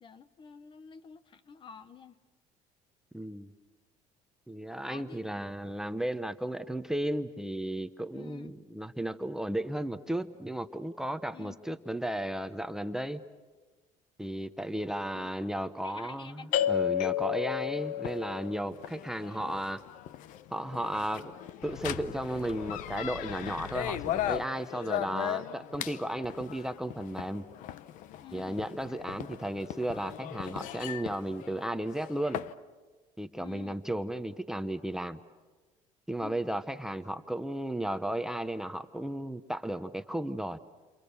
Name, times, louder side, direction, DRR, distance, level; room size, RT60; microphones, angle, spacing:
voice 1, 0.0-2.2 4.9-5.4 8.1-8.6 11.3-11.6 15.8-16.8 28.2-28.6 33.4-33.8 36.2-36.4, left 6 dB, 35° left, 14 dB, 1.0 m, -49 dB
voice 2, 3.1-3.5 4.5-13.2 14.2-19.8 20.5-21.4 21.6-27.5 28.3-32.4 33.2-35.2 36.1-40.6, right 1 dB, 5° right, 9 dB, 0.9 m, -34 dB
sound 1, 16.5-32.5, left 11 dB, 70° left, 0.8 m, -35 dB
29.5 x 27.5 x 6.9 m, 1.3 s
cardioid pair, 115°, 14 cm